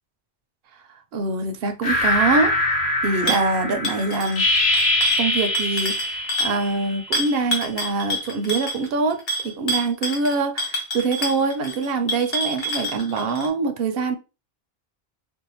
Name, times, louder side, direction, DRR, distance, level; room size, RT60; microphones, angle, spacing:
voice 1, 1.1-4.5 5.2-14.1, right 3 dB, 70° right, 0.8 m, -24 dB
sound 1, 1.8-7.3, left 1 dB, 85° left, 1.0 m, -23 dB
sound 2, 3.3-3.5 3.8-6.6 7.1-13.5, equal, 55° left, 0.8 m, -27 dB
2.6 x 2.1 x 2.8 m
omnidirectional pair, 1.1 m